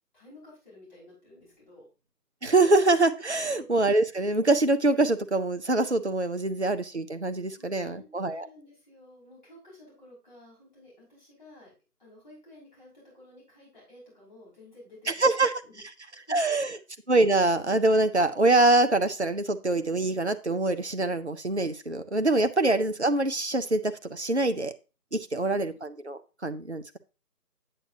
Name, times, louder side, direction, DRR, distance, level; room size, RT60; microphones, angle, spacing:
voice 1, 0.1-1.9 3.4-3.7 6.5-6.6 7.5-11.7 12.0-15.8 16.1-16.6 25.4-25.8, left 2 dB, 30° left, -6 dB, 5.6 m, -52 dB
voice 2, 2.4-8.5 15.2-15.5 16.3-16.7 17.1-24.7 25.1-27.0, right 2 dB, 45° right, 9 dB, 0.6 m, -24 dB
8.8 x 7.8 x 2.8 m, 0.31 s
figure-of-eight pair, 165°, 48 cm